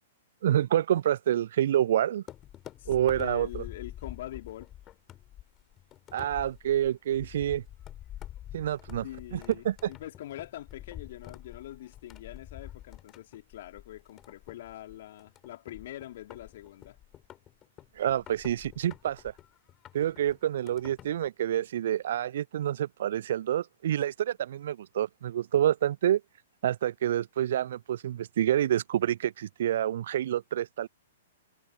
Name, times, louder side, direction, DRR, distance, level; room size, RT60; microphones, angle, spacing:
voice 1, 0.4-2.2 2.9-3.6 6.1-7.6 8.5-9.0 9.3-9.9 18.0-19.3 19.9-26.2 26.6-30.9, right 11 dB, 55° right, 0.3 m, -28 dB
sound 1, 2.3-21.3, left 12 dB, 25° left, 5.9 m, -47 dB
voice 2, 3.2-4.7 9.0-17.0, left 13 dB, 50° left, 2.8 m, -43 dB
figure-of-eight pair, 110°, 0 cm